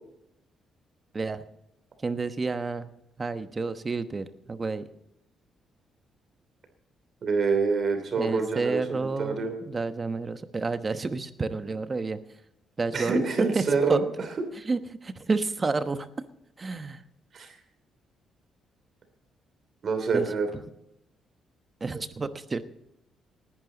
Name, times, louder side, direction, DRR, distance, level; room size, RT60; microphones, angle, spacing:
voice 1, 1.1-1.4 2.0-2.9 3.2-4.8 8.2-12.2 12.8-13.6 13.9-14.0 14.6-16.1 16.6-17.0 20.1-20.3 21.8-22.6, right 3 dB, 30° right, 10 dB, 1.1 m, -30 dB
voice 2, 7.2-9.5 12.9-14.0 17.3-17.6 19.8-20.5, right 4 dB, 50° right, 7 dB, 3.0 m, -26 dB
19.0 x 11.0 x 4.0 m, 0.83 s
cardioid pair, 90°, 0 cm